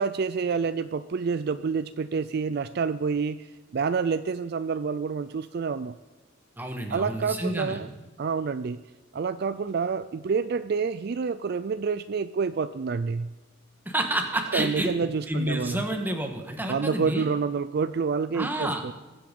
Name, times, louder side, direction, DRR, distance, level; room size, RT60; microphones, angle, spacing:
voice 1, 0.0-3.5 3.7-6.0 6.9-7.9 8.2-8.8 9.1-13.3 14.5-15.8 16.7-18.9, right 5 dB, 50° right, 13 dB, 0.4 m, -28 dB
voice 2, 6.6-7.8 13.8-14.9 15.3-17.3 18.3-18.8, right 1 dB, 10° right, 3 dB, 1.6 m, -29 dB
22.0 x 7.9 x 5.3 m, 1.2 s
head